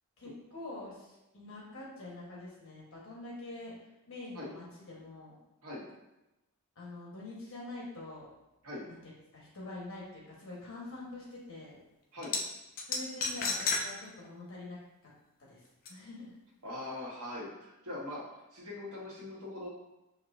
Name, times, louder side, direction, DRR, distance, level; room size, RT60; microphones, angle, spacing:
voice 1, 0.2-3.7 4.1-5.3 6.7-8.3 8.9-11.8 12.9-14.8 15.4-15.6 15.9-16.3, left 2 dB, 65° left, -5 dB, 1.3 m, -45 dB
sound 1, 12.2-12.4 12.8-13.8 14.2-14.3 15.9-16.0, left 4 dB, 40° left, 0.5 m, -31 dB
voice 2, 16.6-18.2 18.5-19.7, left 1 dB, 85° right, -5 dB, 1.4 m, -41 dB
5.8 x 2.7 x 2.6 m, 0.97 s
head